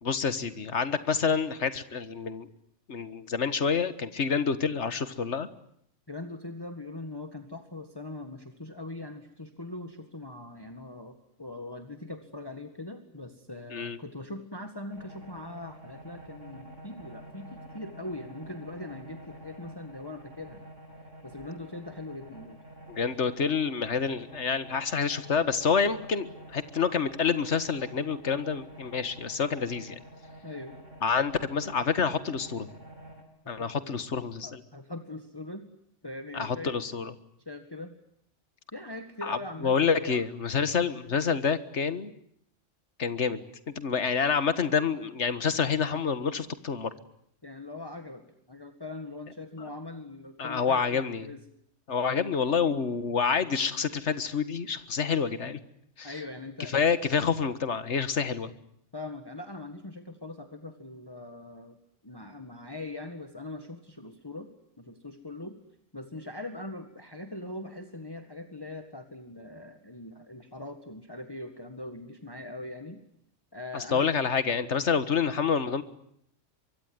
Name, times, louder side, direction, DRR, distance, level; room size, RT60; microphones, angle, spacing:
voice 1, 0.0-2.5 2.9-5.5 13.7-14.0 22.9-30.0 31.0-32.7 33.5-34.6 36.3-37.1 39.2-42.1 43.0-43.4 43.7-46.9 49.6-49.7 50.4-51.3 51.9-55.6 56.0-56.1 56.7-58.5 73.7-75.8, left 6 dB, 65° left, 12 dB, 1.9 m, -28 dB
voice 2, 6.1-20.6 21.2-22.6 30.4-30.8 33.6-34.0 34.4-35.7 36.0-36.8 37.5-38.0 38.7-40.2 47.4-51.4 52.0-52.3 56.0-56.8 58.9-61.8 62.0-64.5 64.8-65.6 65.9-73.0 73.5-74.1, left 2 dB, 20° left, 6 dB, 1.9 m, -41 dB
sound 1, 14.9-33.2, right 1 dB, 75° right, 5.8 m, -48 dB
24.5 x 23.5 x 9.6 m, 0.70 s
omnidirectional pair, 1.3 m